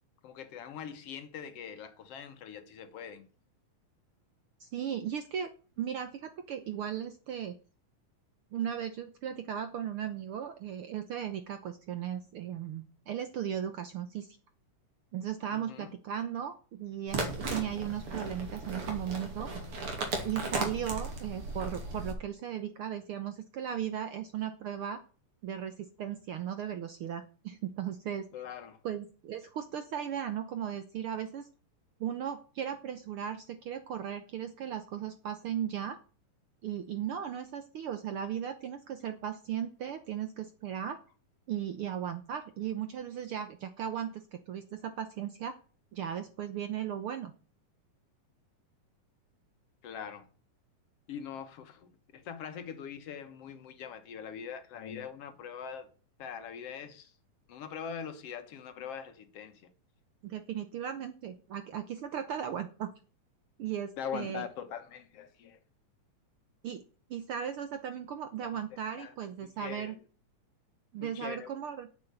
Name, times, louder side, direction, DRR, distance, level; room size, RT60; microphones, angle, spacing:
voice 1, 0.2-3.3 15.5-15.9 28.3-28.8 49.8-50.3 51.1-55.9 56.2-57.1 57.5-59.7 64.0-65.6 68.5-68.6 69.0-69.1 69.4-70.0 71.0-71.5, left 8 dB, 60° left, 1.9 m, -42 dB
voice 2, 4.6-5.5 5.8-7.5 8.5-14.4 15.1-19.5 20.2-25.0 25.4-28.3 28.8-31.5 32.0-36.0 36.6-41.0 41.5-45.6 45.9-47.3 60.2-62.9 63.6-64.4 66.6-66.8 67.1-70.0 70.9-71.9, right 9 dB, 80° right, 1.2 m, -36 dB
sound 1, 17.1-22.1, right 2 dB, 45° right, 3.2 m, -36 dB
8.9 x 7.5 x 8.0 m
omnidirectional pair, 3.7 m